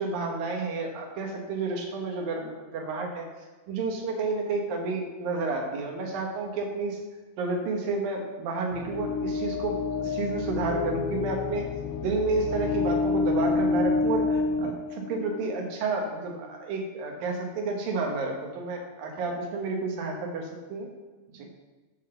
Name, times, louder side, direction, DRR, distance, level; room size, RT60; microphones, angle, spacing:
voice 1, 0.0-3.3 3.7-7.0 7.4-11.7 12.0-20.9 21.3-21.5, right 3 dB, 85° right, 2 dB, 3.0 m, -30 dB
sound 1, 8.7-15.6, left 4 dB, 90° left, 1.6 m, -28 dB
10.0 x 3.9 x 6.8 m, 1.2 s
omnidirectional pair, 4.0 m